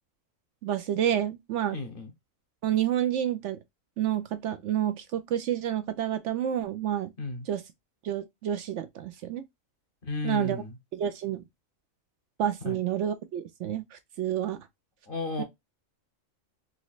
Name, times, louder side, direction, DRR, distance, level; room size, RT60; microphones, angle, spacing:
voice 1, 0.6-1.8 2.6-3.6 4.0-7.1 7.5-7.6 8.0-9.4 10.2-10.6 10.9-11.4 12.4-14.6 15.4-15.5, right 10 dB, 70° right, 0.8 m, -29 dB
voice 2, 1.7-2.1 7.2-7.5 10.0-10.7 12.6-12.8 15.1-15.4, left 3 dB, 45° left, 0.9 m, -33 dB
4.0 x 3.0 x 2.3 m
omnidirectional pair, 1.4 m